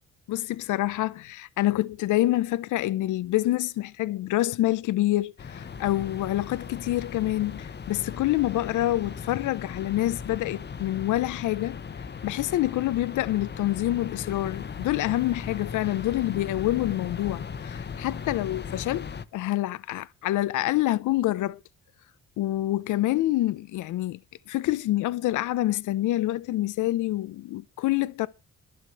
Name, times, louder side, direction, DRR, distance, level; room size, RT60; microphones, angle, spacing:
voice 1, 0.3-11.8 12.2-19.1 19.3-21.6 22.4-24.2 24.5-28.3, left 15 dB, 80° left, 0.7 m, -27 dB
sound 1, 5.4-19.2, left 6 dB, 35° left, 1.1 m, -38 dB
11.0 x 7.8 x 7.6 m
cardioid pair, 90°, 30 cm